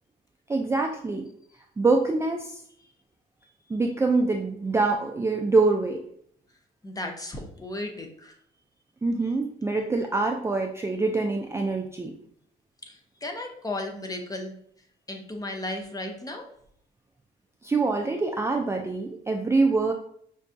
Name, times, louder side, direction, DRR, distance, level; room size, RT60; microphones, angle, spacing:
voice 1, 0.5-1.3 1.8-2.6 3.7-6.0 9.0-12.1 17.6-19.9, right 3 dB, 15° right, 2 dB, 0.3 m, -25 dB
voice 2, 6.8-8.3 12.9-14.5 15.1-16.5, left 1 dB, 20° left, 3 dB, 0.7 m, -35 dB
5.3 x 2.3 x 2.6 m, 0.67 s
cardioid pair, 90°, 20 cm